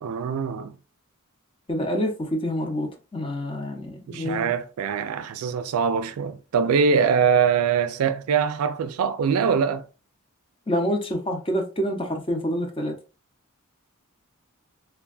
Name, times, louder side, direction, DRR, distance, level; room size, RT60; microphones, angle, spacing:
voice 1, 0.0-0.7 4.1-9.9, right 6 dB, 90° right, 0.4 m, -23 dB
voice 2, 1.7-4.5 10.7-13.0, equal, 25° left, 0.6 m, -27 dB
3.3 x 2.2 x 2.4 m
head